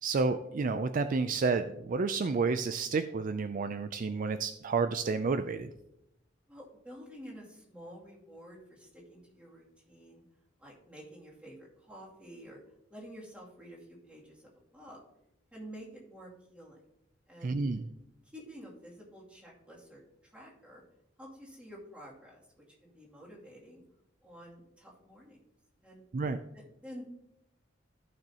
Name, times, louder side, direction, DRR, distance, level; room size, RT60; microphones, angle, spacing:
voice 1, 0.0-5.7 17.4-17.9 26.1-26.4, right 4 dB, 45° right, 10 dB, 0.4 m, -30 dB
voice 2, 6.5-10.2 10.6-12.6 12.9-13.8 14.1-14.4 14.7-15.0 15.5-16.8 17.3-17.5 18.3-20.0 20.3-20.8 21.2-22.4 22.8-23.8 24.2-25.4 25.8-26.0 26.5-27.1, equal, 5° right, -5 dB, 2.6 m, -50 dB
14.5 x 6.1 x 2.9 m, 0.83 s
head